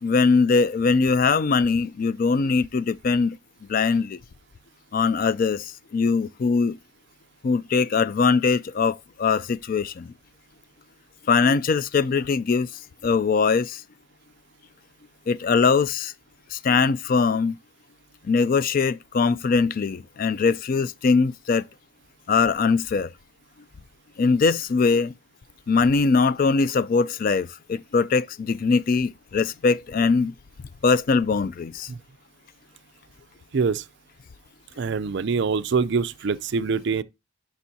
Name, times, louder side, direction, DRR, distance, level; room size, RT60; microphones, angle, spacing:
voice 1, 0.0-3.3 3.7-4.2 4.9-6.8 7.4-10.1 11.3-12.7 13.0-13.8 15.3-16.1 16.5-17.6 18.3-21.7 22.3-23.1 24.2-25.1 25.7-30.3 30.8-31.9, left 4 dB, 40° left, 0.3 m, -21 dB
voice 2, 33.5-33.8 34.8-37.0, right 5 dB, 55° right, 0.4 m, -24 dB
10.0 x 5.3 x 2.7 m
head